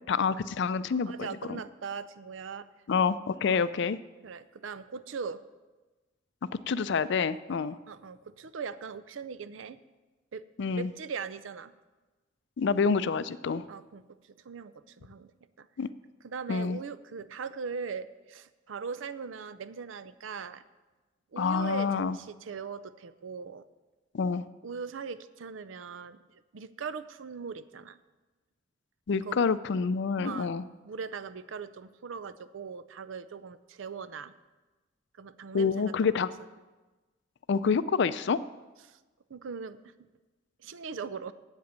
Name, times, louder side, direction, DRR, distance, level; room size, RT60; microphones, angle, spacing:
voice 1, 0.1-1.6 2.9-4.0 6.7-7.8 10.6-10.9 12.6-13.6 15.8-15.9 16.5-16.8 21.4-22.1 24.1-24.4 29.1-30.6 35.5-36.3 37.5-38.4, left 5 dB, 65° left, 15 dB, 0.4 m, -27 dB
voice 2, 0.9-2.7 3.4-3.6 4.2-5.4 7.9-9.8 10.3-10.4 10.7-11.7 13.7-14.0 14.4-15.3 15.6-15.7 16.2-20.6 21.3-23.7 24.6-28.0 29.2-29.4 30.2-34.3 35.2-36.2 38.8-39.0 39.3-39.9 40.6-41.3, right 5 dB, 85° right, 14 dB, 0.5 m, -40 dB
8.3 x 7.8 x 8.1 m, 1.2 s
head